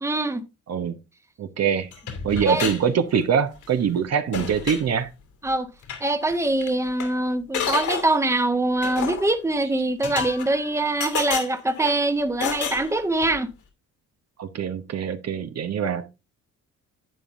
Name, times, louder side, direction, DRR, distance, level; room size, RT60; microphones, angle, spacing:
voice 1, 0.0-0.4 2.4-2.7 5.4-5.7 6.0-13.5, right 2 dB, 10° right, 1.1 m, -23 dB
voice 2, 1.4-1.9 2.2-5.1 14.4-16.1, right 7 dB, 55° right, 1.1 m, -24 dB
sound 1, 1.9-2.8 3.1-3.6 3.9-4.0 4.3-4.9 5.8-6.0 6.3-6.4 6.6-7.1 7.5-8.2 8.8-9.3 10.0-10.7 11.0-12.0 12.4-13.4, left 7 dB, 75° left, 2.8 m, -30 dB
11.0 x 8.6 x 2.6 m
cardioid pair, 90°, 30 cm